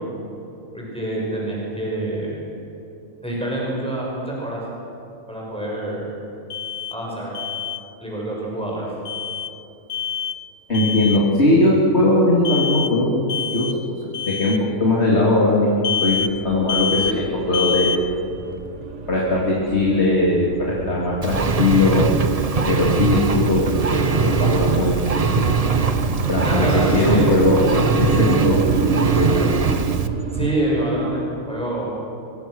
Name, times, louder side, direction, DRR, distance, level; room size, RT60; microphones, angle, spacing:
voice 1, 0.7-2.3 3.2-4.6 5.3-6.1 6.9-7.3 8.0-8.9 26.4-27.3 30.3-31.9, right 1 dB, 5° left, -5 dB, 6.1 m, -26 dB
Alarm, 6.5-7.0 7.3-7.8 9.1-9.5 9.9-10.4 10.7-11.2 12.4-12.9 13.3-13.8 14.1-14.6 15.8-16.3 16.7-17.2 17.5-18.0, left 7 dB, 85° left, 1.2 m, -26 dB
voice 2, 10.7-13.2 13.5-13.7 14.3-17.9 19.1-22.0 22.7-23.6 23.9-25.4 26.3-29.5, left 2 dB, 50° left, -4 dB, 3.4 m, -19 dB
sound 1, 16.1-30.6, right 7 dB, 60° right, 1.4 m, -27 dB
Engine, 21.2-30.1, right 4 dB, 30° right, 0.9 m, -22 dB
24.5 x 23.5 x 6.4 m, 2.8 s
omnidirectional pair, 1.4 m